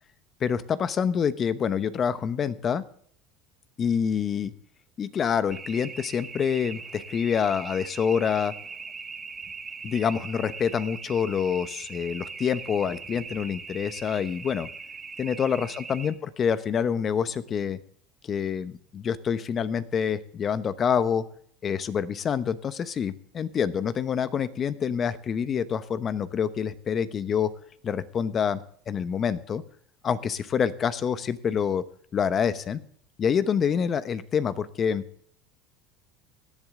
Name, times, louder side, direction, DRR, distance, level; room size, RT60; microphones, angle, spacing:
voice 1, 0.4-2.8 3.8-4.5 5.0-8.5 9.8-14.7 15.2-17.8 18.2-21.2 21.6-27.5 27.8-29.6 30.0-31.8 32.1-32.8 33.2-35.1, left 7 dB, 35° left, 14 dB, 1.0 m, -27 dB
sound 1, 5.5-16.1, right 5 dB, 20° right, 1.6 m, -40 dB
17.5 x 11.0 x 3.8 m, 0.62 s
supercardioid pair, 115°, 0 cm